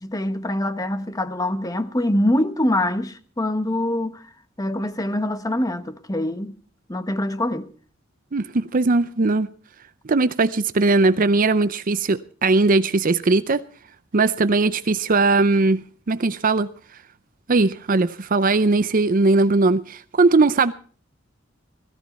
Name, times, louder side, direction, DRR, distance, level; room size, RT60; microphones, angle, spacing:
voice 1, 0.0-4.2 4.6-6.5 6.9-7.7, left 1 dB, 20° left, 1.0 m, -24 dB
voice 2, 8.3-9.5 10.0-13.6 14.1-15.8 16.1-16.7 17.5-20.7, right 3 dB, 45° right, 0.6 m, -19 dB
17.0 x 15.5 x 4.2 m
head